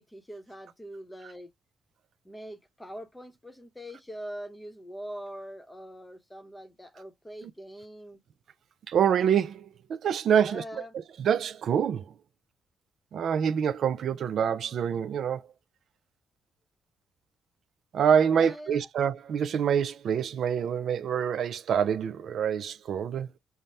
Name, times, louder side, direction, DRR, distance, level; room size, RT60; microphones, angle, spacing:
voice 1, 0.0-1.5 2.2-8.2 10.3-11.0 18.3-18.9, equal, 10° left, 0.8 m, -43 dB
voice 2, 8.9-10.6 11.2-12.0 13.1-15.4 17.9-23.3, right 8 dB, 65° right, 0.3 m, -26 dB
5.5 x 2.0 x 3.3 m
cardioid pair, 90°, 0 cm